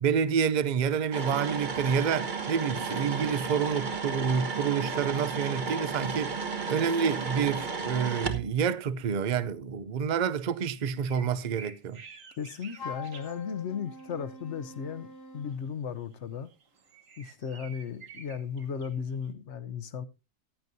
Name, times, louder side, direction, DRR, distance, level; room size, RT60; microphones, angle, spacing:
voice 1, 0.0-6.3 6.7-12.0, right 7 dB, 80° right, 0.4 m, -28 dB
sound 1, 1.1-8.4, right 4 dB, 35° right, 1.1 m, -33 dB
sound 2, 11.0-14.1 14.4-14.6 15.4-19.3, right 5 dB, 55° right, 1.6 m, -51 dB
voice 2, 12.4-15.1 15.3-16.5 17.2-20.0, left 7 dB, 55° left, 0.9 m, -35 dB
Wind instrument woodwind instrument, 12.8-15.6, left 3 dB, 90° left, 1.8 m, -44 dB
14.5 x 11.0 x 2.7 m
omnidirectional pair, 1.7 m